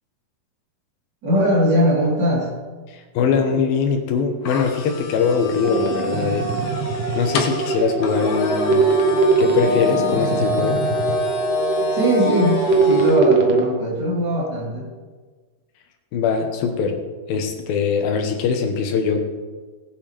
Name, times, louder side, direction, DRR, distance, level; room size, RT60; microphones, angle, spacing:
voice 1, 1.2-2.5 11.9-14.9, equal, 30° right, -7 dB, 4.3 m, -20 dB
voice 2, 3.1-6.5 7.1-8.8 9.4-10.8 16.1-17.0 17.3-19.2, left 5 dB, 90° left, 5 dB, 3.0 m, -21 dB
sound 1, 4.4-13.2, left 2 dB, 65° left, 2.3 m, -27 dB
sound 2, 5.6-13.6, right 4 dB, 80° right, 1.0 m, -21 dB
19.0 x 9.2 x 3.4 m, 1.4 s
omnidirectional pair, 4.0 m